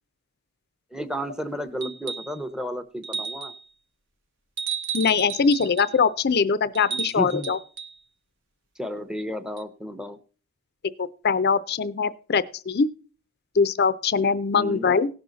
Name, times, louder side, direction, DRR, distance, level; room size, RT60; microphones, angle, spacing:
voice 1, 0.9-3.5 6.9-7.5 8.8-10.2 14.5-14.9, equal, 5° right, 12 dB, 0.7 m, -32 dB
sound 1, 1.8-2.4 3.0-3.6 4.6-6.0 6.7-7.9 9.6-9.7, right 6 dB, 55° right, 0.9 m, -33 dB
voice 2, 4.9-7.6 11.0-12.9 13.6-15.1, left 5 dB, 45° left, 15 dB, 0.5 m, -22 dB
17.0 x 6.3 x 3.9 m, 0.38 s
head